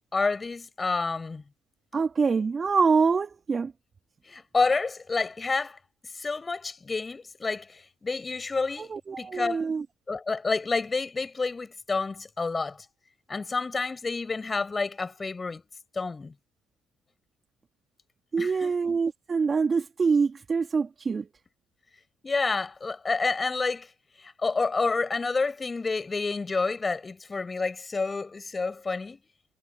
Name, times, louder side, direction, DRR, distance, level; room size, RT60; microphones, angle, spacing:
voice 1, 0.1-1.4 4.2-5.8 6.1-9.6 10.1-12.8 13.3-15.6 15.9-16.3 18.4-18.7 22.2-23.9 24.2-29.2, left 4 dB, 25° left, 6.6 m, -29 dB
voice 2, 1.9-3.7 8.8-9.8 18.3-21.3, right 5 dB, 35° right, 3.3 m, -25 dB
hypercardioid pair, 60°, 0 cm